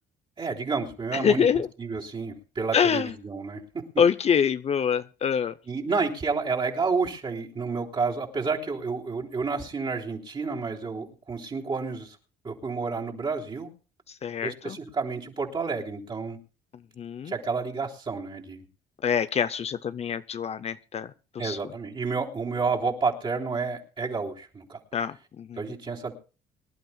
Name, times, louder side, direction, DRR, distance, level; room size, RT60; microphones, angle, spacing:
voice 1, 0.4-1.5 1.8-3.8 5.7-12.1 12.4-13.7 14.4-16.4 17.2-18.6 21.4-24.8 25.6-26.1, right 4 dB, 30° right, -1 dB, 3.4 m, -30 dB
voice 2, 1.1-1.7 2.7-3.1 4.0-5.5 14.1-14.8 17.0-17.3 19.0-21.6 24.9-25.6, left 7 dB, 40° left, 12 dB, 0.6 m, -25 dB
25.0 x 12.0 x 2.3 m, 0.35 s
cardioid pair, 110°, 17 cm